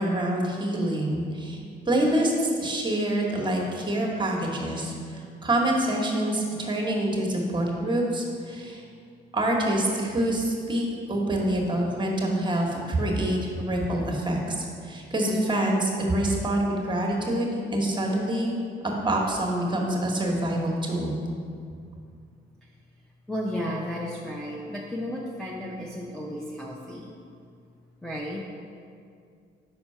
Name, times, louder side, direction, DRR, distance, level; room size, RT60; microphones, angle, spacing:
voice 1, 0.0-8.8 9.3-18.5 18.8-21.2, right 1 dB, 25° right, -1 dB, 1.2 m, -26 dB
voice 2, 23.3-27.1 28.0-28.4, equal, 5° left, -4 dB, 0.6 m, -33 dB
5.6 x 4.4 x 5.4 m, 2.3 s
cardioid pair, 90°, 20 cm